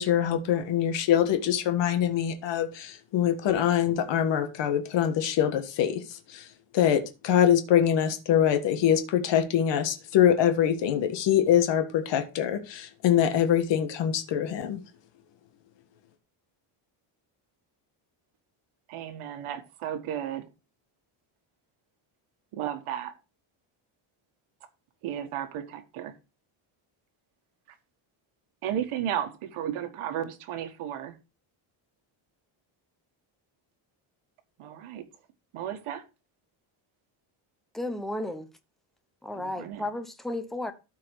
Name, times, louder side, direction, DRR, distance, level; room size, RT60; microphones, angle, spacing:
voice 1, 0.0-6.5 6.7-14.8, left 9 dB, 60° left, 1.5 m, -24 dB
voice 2, 18.9-20.5 22.5-23.2 25.0-26.1 28.6-31.2 34.6-35.0 35.5-36.0 39.3-39.9, right 10 dB, 80° right, 1.8 m, -34 dB
voice 3, 37.7-38.5 39.2-40.7, left 1 dB, ahead, 0.6 m, -33 dB
13.0 x 4.7 x 4.6 m
cardioid pair, 175°, 50 cm